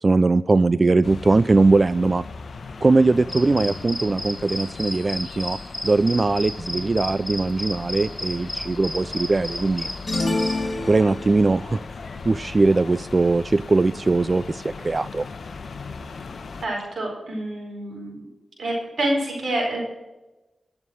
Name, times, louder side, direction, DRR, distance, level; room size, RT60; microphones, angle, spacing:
voice 1, 0.0-2.2 2.8-5.6 5.8-10.5 10.9-11.8 12.3-15.3, right 3 dB, 45° right, 17 dB, 0.3 m, -20 dB
sound 1, 1.0-16.7, left 4 dB, 80° left, 1.0 m, -38 dB
sound 2, 3.3-10.6, left 1 dB, 15° left, 2.7 m, -33 dB
sound 3, 10.1-11.6, left 3 dB, 40° left, 2.2 m, -27 dB
voice 2, 16.6-18.2 18.6-19.8, right 1 dB, 80° right, -1 dB, 4.5 m, -27 dB
13.0 x 7.3 x 6.2 m, 1.0 s
cardioid pair, 50°, 0 cm